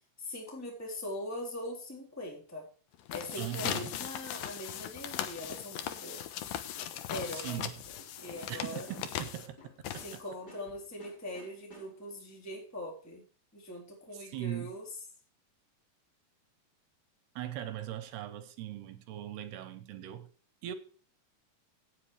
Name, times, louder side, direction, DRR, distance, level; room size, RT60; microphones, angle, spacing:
voice 1, 0.2-2.7 3.1-6.2 7.1-7.7 8.2-8.9 10.0-13.2 13.5-14.9, left 1 dB, 5° left, 3.3 m, -41 dB
sound 1, 2.9-10.5, left 10 dB, 70° left, 2.4 m, -39 dB
voice 2, 3.4-3.9 7.3-7.7 8.5-9.6 10.1-10.2 14.1-14.7 17.4-20.3 20.6-20.7, right 12 dB, 75° right, 2.9 m, -39 dB
sound 2, 6.4-12.2, equal, 25° left, 4.6 m, -55 dB
17.5 x 7.7 x 3.3 m
omnidirectional pair, 4.9 m